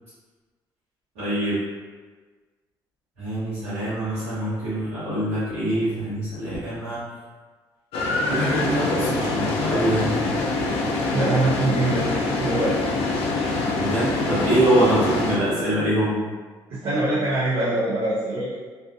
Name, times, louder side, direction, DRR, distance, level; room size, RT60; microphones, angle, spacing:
voice 1, 1.2-1.6 3.2-7.0 8.3-10.2 13.7-16.2, right 1 dB, 90° right, -15 dB, 1.0 m, -24 dB
sound 1, 7.9-15.4, left 2 dB, 75° left, 0.4 m, -25 dB
voice 2, 11.1-12.8 16.7-18.6, right 2 dB, 65° right, -10 dB, 0.7 m, -23 dB
2.5 x 2.4 x 2.4 m, 1.4 s
supercardioid pair, 60°, 10 cm